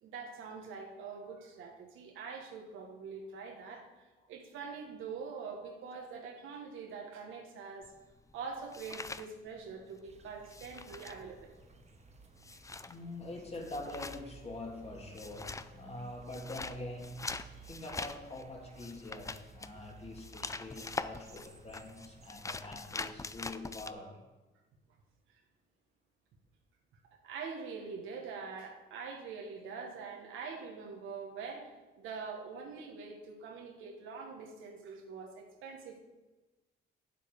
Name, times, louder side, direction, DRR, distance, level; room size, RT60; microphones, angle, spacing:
voice 1, 0.0-7.9 8.3-11.5 25.3-25.4 27.2-36.0, right 5 dB, 85° right, 1 dB, 1.6 m, -44 dB
sound 1, 7.8-10.0 10.3-23.9, left 3 dB, 15° left, 0.4 m, -44 dB
sound 2, 10.0-22.3, right 5 dB, 35° right, 1.0 m, -57 dB
voice 2, 12.9-17.2 17.7-24.2, left 2 dB, 30° left, 1 dB, 2.4 m, -44 dB
9.0 x 7.5 x 5.3 m, 1.2 s
cardioid pair, 90°, 20 cm